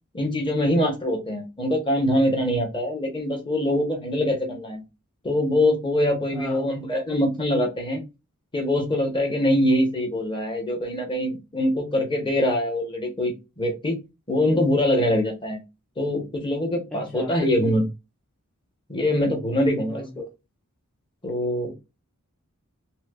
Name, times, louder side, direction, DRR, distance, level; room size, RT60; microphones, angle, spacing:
voice 1, 0.1-4.8 5.2-8.0 8.5-14.0 14.3-15.6 16.0-17.9 18.9-20.2 21.2-21.7, left 1 dB, 20° left, 0.9 m, -23 dB
voice 2, 6.3-6.7 16.9-17.3 19.9-20.1, equal, 5° left, 0.4 m, -37 dB
5.5 x 2.0 x 2.3 m
head